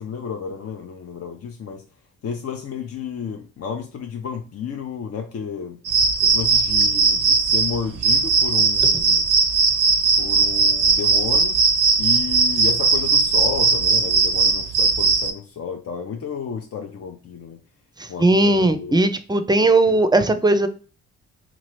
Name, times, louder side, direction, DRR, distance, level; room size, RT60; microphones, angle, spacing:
voice 1, 0.0-1.8 2.2-5.8 6.2-9.3 10.2-11.6 12.0-17.6 18.1-19.0 19.9-20.0, left 6 dB, 50° left, 3 dB, 0.5 m, -31 dB
sound 1, 5.8-15.3, right 4 dB, 75° right, 0.5 m, -18 dB
voice 2, 18.0-20.7, right 2 dB, 15° right, 10 dB, 0.5 m, -18 dB
2.9 x 2.4 x 3.1 m, 0.37 s
supercardioid pair, 45°, 32 cm